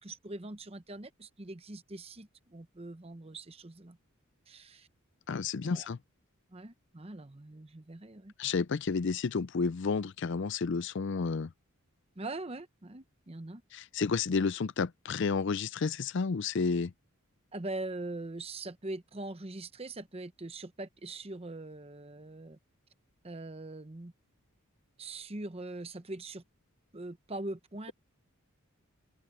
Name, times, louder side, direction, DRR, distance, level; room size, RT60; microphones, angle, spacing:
voice 1, 0.0-4.0 4.5-4.9 5.6-5.9 6.5-8.3 12.2-13.6 17.5-22.6 23.2-24.1 25.0-26.4 26.9-27.9, right 2 dB, 25° right, 0.9 m, -42 dB
voice 2, 5.3-6.0 8.4-11.5 13.7-16.9, left 5 dB, 55° left, 0.5 m, -31 dB
open air
head